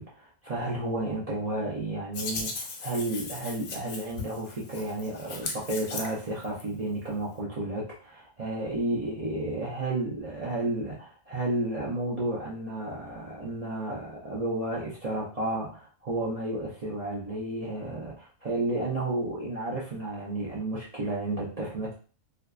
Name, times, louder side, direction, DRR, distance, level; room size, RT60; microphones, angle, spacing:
voice 1, 0.0-21.9, right 2 dB, 60° right, -6 dB, 0.3 m, -32 dB
Hands, 2.1-6.6, left 4 dB, 85° left, 1.0 m, -38 dB
2.6 x 2.2 x 2.3 m, 0.39 s
omnidirectional pair, 1.4 m